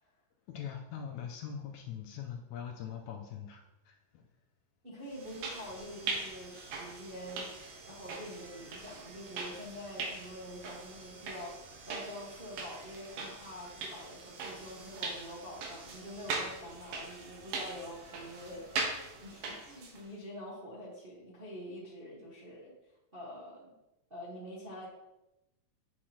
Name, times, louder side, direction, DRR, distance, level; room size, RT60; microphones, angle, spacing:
voice 1, 0.5-4.2 6.9-7.0, left 8 dB, 80° left, 2 dB, 1.8 m, -42 dB
voice 2, 4.8-22.7 23.1-23.7 24.1-24.9, equal, 70° right, -7 dB, 0.5 m, -46 dB
sound 1, 5.1-20.1, right 4 dB, 90° right, 2.9 m, -41 dB
8.7 x 6.2 x 2.9 m, 0.94 s
omnidirectional pair, 3.9 m